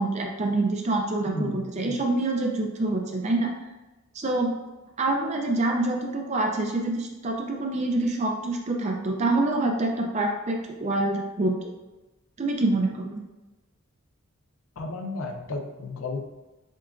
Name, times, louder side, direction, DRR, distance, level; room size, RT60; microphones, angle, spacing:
voice 1, 0.0-3.5 4.1-4.6 5.0-11.6 12.4-13.2, right 2 dB, 30° right, 1 dB, 0.4 m, -26 dB
voice 2, 1.3-2.0 14.8-16.3, left 2 dB, 70° left, 4 dB, 0.6 m, -33 dB
7.3 x 2.5 x 2.4 m, 1.1 s
head